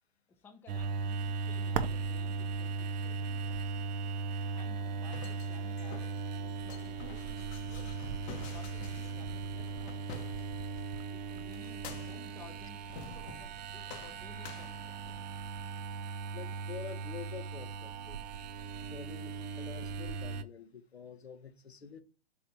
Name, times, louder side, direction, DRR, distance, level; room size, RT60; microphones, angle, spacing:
voice 1, 0.3-3.7 4.5-8.1 8.5-10.5 11.1-15.1, left 5 dB, 5° left, 0.5 m, -57 dB
sound 1, 0.7-20.4, right 4 dB, 45° right, 0.5 m, -38 dB
sound 2, 4.9-10.8 11.5-12.4 12.9-13.6 13.9-15.3, left 6 dB, 30° left, 0.8 m, -50 dB
voice 2, 16.3-18.2 18.9-22.0, left 6 dB, 85° left, 0.8 m, -47 dB
4.4 x 3.3 x 2.7 m
figure-of-eight pair, 115°, 32 cm